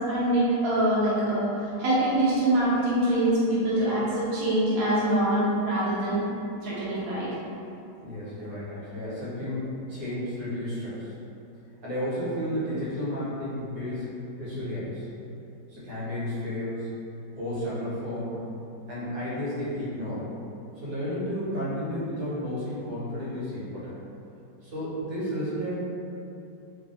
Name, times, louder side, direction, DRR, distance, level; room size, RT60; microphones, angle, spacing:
voice 1, 0.1-1.5 1.8-6.3 6.6-7.3, right 1 dB, 75° right, -9 dB, 0.7 m, -24 dB
voice 2, 8.0-11.1 11.8-14.1 14.4-15.0 15.7-16.9 17.3-18.4 18.9-20.2 20.8-23.9 24.6-25.8, equal, 55° right, -10 dB, 1.4 m, -32 dB
3.3 x 2.3 x 3.9 m, 2.8 s
omnidirectional pair, 2.2 m